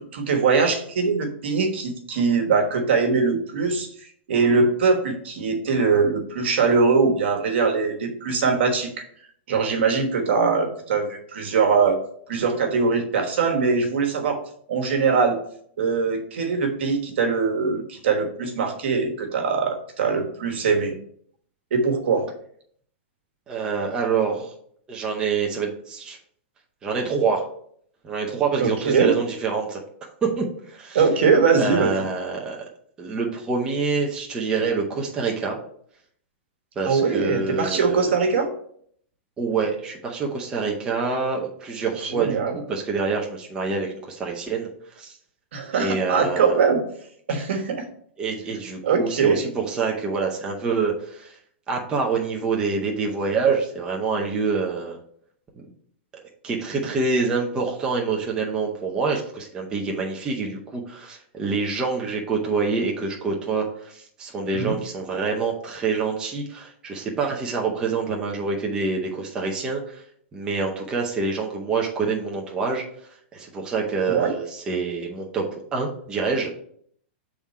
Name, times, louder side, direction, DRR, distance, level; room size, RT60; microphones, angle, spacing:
voice 1, 0.0-3.9 4.3-9.0 9.5-12.0 12.3-14.4 14.7-15.4 15.8-20.9 21.7-22.3 28.6-29.1 30.9-32.1 36.8-38.5 42.0-42.6 45.5-46.8 47.3-47.8 48.8-49.4 64.5-64.8 74.1-74.3, right 5 dB, 70° right, 3 dB, 1.3 m, -22 dB
voice 2, 23.5-24.5 24.9-26.2 26.8-27.5 28.0-29.8 30.2-31.0 31.6-32.7 33.0-35.6 36.8-38.1 39.4-44.7 44.9-45.2 45.8-46.5 48.2-51.4 51.7-55.0 55.6-55.7 56.1-70.0 70.3-72.8 73.3-76.5, right 4 dB, 10° right, -1 dB, 0.6 m, -26 dB
6.9 x 3.7 x 4.2 m, 0.64 s
supercardioid pair, 165°, 6 cm